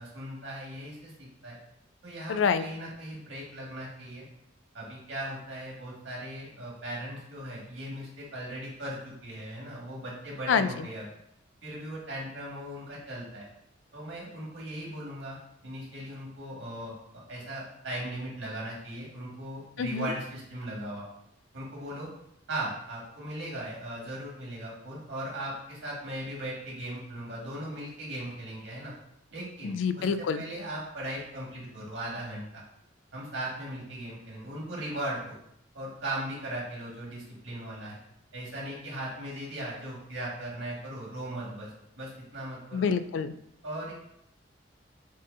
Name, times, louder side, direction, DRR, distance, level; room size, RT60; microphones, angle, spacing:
voice 1, 0.0-1.6 2.0-4.2 4.7-11.1 11.6-13.4 13.9-15.4 15.6-21.0 21.5-22.1 22.5-28.9 29.3-30.1 30.3-32.6 33.1-35.4 35.7-38.0 38.3-41.7 42.0-42.9 43.6-43.9, right 1 dB, 85° right, -4 dB, 1.7 m, -38 dB
voice 2, 2.3-2.6 10.5-10.9 19.8-20.1 29.6-30.4 42.7-43.3, left 6 dB, 75° left, 11 dB, 0.3 m, -27 dB
7.4 x 2.7 x 2.6 m, 0.76 s
head